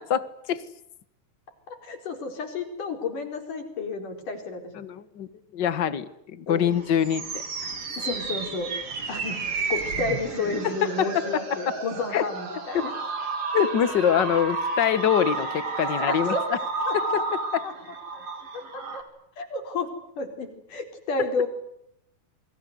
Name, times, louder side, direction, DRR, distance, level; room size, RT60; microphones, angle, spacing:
voice 1, 1.7-4.7 6.5-6.7 8.0-8.7 9.1-9.4 9.7-12.9 15.9-16.5 16.9-17.2 17.6-17.7 18.5-19.1 19.4-19.9 20.2-21.5, left 3 dB, 70° left, 5 dB, 6.0 m, -31 dB
voice 2, 4.7-5.3 5.5-7.4 10.6-11.6 12.1-12.2 12.7-12.9 13.5-16.3 16.9-17.0 17.3-17.6, left 9 dB, 50° left, 14 dB, 1.3 m, -24 dB
sound 1, 6.6-19.0, right 4 dB, 45° right, 4.2 m, -31 dB
28.5 x 23.0 x 8.1 m, 0.77 s
omnidirectional pair, 3.9 m